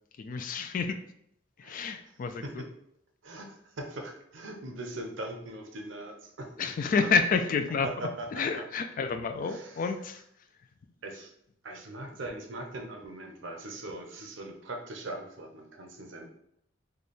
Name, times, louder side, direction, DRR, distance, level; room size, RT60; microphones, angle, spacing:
voice 1, 0.2-1.0 1.6-2.6 6.6-10.2, left 5 dB, 45° left, 9 dB, 0.3 m, -29 dB
voice 2, 1.6-2.0 2.4-2.7 3.2-6.5 7.8-8.6 9.4-9.8 11.0-11.3 11.6-16.3, right 1 dB, 80° right, 4 dB, 0.7 m, -40 dB
3.2 x 2.2 x 4.1 m, 0.73 s
head